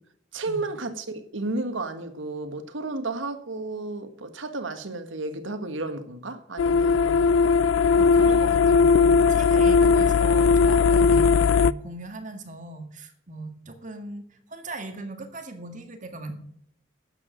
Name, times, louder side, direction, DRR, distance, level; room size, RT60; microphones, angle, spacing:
voice 1, 0.3-7.3, right 2 dB, 85° right, 1.5 m, -32 dB
sound 1, 6.6-11.7, left 5 dB, 90° left, 0.4 m, -18 dB
voice 2, 8.0-16.3, right 2 dB, 40° right, 1.9 m, -38 dB
12.0 x 8.4 x 5.1 m
head